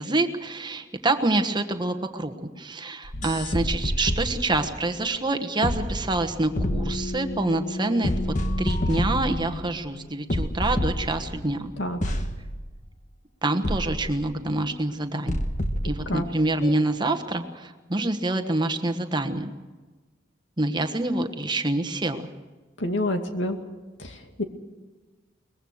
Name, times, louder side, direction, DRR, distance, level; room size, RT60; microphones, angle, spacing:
voice 1, 0.0-8.1 8.6-11.7 13.4-15.4 15.8-19.5 20.6-22.2, right 2 dB, 25° right, 7 dB, 1.3 m, -26 dB
sound 1, 3.0-9.8 10.3-11.5 12.0-12.7 13.6-14.5 15.3-16.1 16.6-16.7, left 1 dB, 40° left, 1.4 m, -29 dB
voice 2, 22.8-23.6 24.0-24.4, left 1 dB, 90° left, 5 dB, 2.3 m, -28 dB
22.5 x 20.5 x 6.5 m, 1.3 s
head